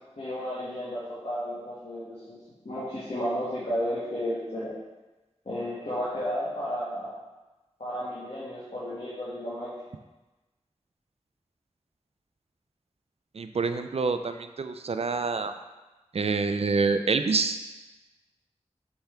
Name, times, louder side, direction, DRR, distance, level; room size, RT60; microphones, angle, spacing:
voice 1, 0.2-2.4 2.6-4.7 5.5-7.1 7.8-9.7, equal, 60° left, -10 dB, 1.8 m, -32 dB
voice 2, 13.3-15.5 16.1-17.6, right 4 dB, 60° right, 9 dB, 0.4 m, -27 dB
5.8 x 5.4 x 3.4 m, 1.1 s
wide cardioid pair, 55°, 12 cm